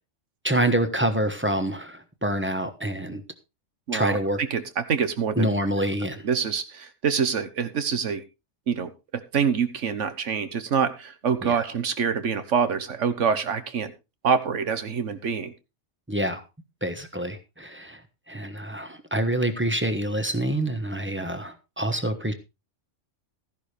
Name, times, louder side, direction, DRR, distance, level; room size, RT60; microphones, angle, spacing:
voice 1, 0.4-3.2 3.9-4.4 5.4-6.2 11.4-11.7 16.1-16.4 16.8-18.0 18.3-22.3, right 1 dB, 10° right, 9 dB, 1.1 m, -26 dB
voice 2, 3.9-4.2 4.5-5.5 6.0-8.2 8.7-8.9 9.3-13.9 14.2-15.5, right 6 dB, 80° right, 12 dB, 1.5 m, -26 dB
14.0 x 11.0 x 3.3 m, 0.26 s
omnidirectional pair, 1.2 m